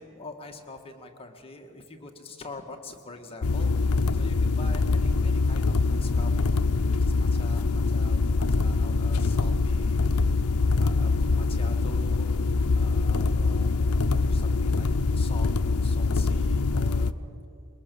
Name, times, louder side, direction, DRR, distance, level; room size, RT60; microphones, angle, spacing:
voice 1, 0.0-6.5 6.9-10.0 10.7-12.3 12.7-15.5 15.8-17.1, left 3 dB, 25° left, 3 dB, 1.8 m, -45 dB
sound 1, 3.4-17.1, left 3 dB, 85° left, 0.7 m, -24 dB
22.5 x 21.5 x 7.0 m, 2.6 s
head